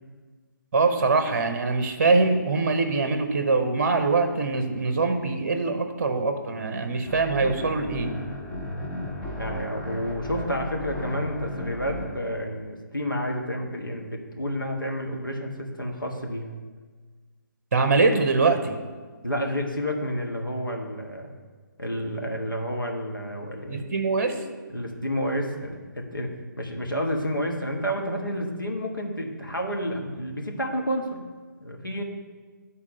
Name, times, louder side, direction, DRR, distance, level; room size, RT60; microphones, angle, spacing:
voice 1, 0.7-8.1 17.7-18.8 23.7-24.3, right 3 dB, 40° right, 7 dB, 0.8 m, -23 dB
sound 1, 7.1-12.1, left 1 dB, 10° left, 0.8 m, -35 dB
voice 2, 9.4-16.6 19.2-21.3 21.8-23.9 24.7-26.3 26.6-31.2 31.6-32.0, equal, 85° left, 0 dB, 1.4 m, -30 dB
9.8 x 4.1 x 5.3 m, 1.5 s
figure-of-eight pair, 140°, 11 cm